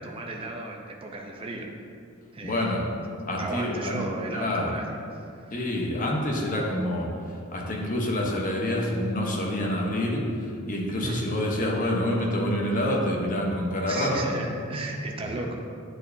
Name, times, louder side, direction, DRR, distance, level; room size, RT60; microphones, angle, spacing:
voice 1, 0.0-1.7 2.3-2.7 3.4-5.7 11.0-11.2 13.9-15.6, right 2 dB, 25° right, 1 dB, 0.5 m, -35 dB
voice 2, 2.4-2.8 3.3-4.0 4.3-4.8 5.5-14.2 15.2-15.3, left 1 dB, 40° left, -1 dB, 0.9 m, -27 dB
8.8 x 4.5 x 2.7 m, 2.4 s
head